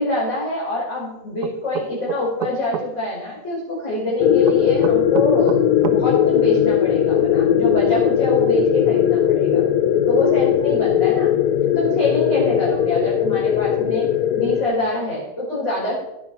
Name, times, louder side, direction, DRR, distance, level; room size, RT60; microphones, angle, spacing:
voice 1, 0.0-9.6 10.1-11.3 11.7-14.0 14.3-16.0, left 1 dB, 45° left, -8 dB, 5.6 m, -25 dB
sound 1, 1.4-2.9 4.4-6.0, right 9 dB, 85° right, 1.4 m, -27 dB
sound 2, 4.2-14.6, left 10 dB, 80° left, 1.3 m, -18 dB
17.5 x 8.4 x 5.7 m, 0.92 s
omnidirectional pair, 1.7 m